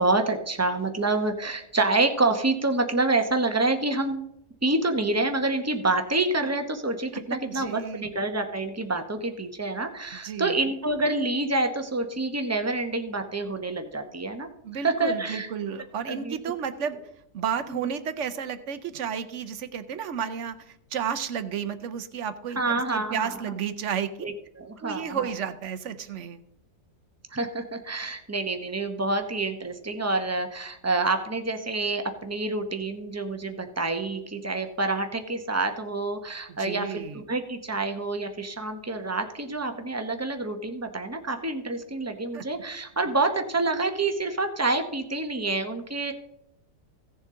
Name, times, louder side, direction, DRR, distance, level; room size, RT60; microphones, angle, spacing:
voice 1, 0.0-4.3 4.6-14.5 14.8-15.5 16.1-16.3 22.6-23.5 24.2-25.3 27.3-46.1, right 2 dB, 15° right, 6 dB, 0.5 m, -27 dB
voice 2, 7.4-8.0 10.2-10.7 14.6-17.0 17.3-24.1 24.8-26.4 36.6-37.2 42.3-42.4, right 7 dB, 55° right, 12 dB, 0.9 m, -32 dB
16.0 x 7.2 x 3.7 m, 0.79 s
omnidirectional pair, 1.8 m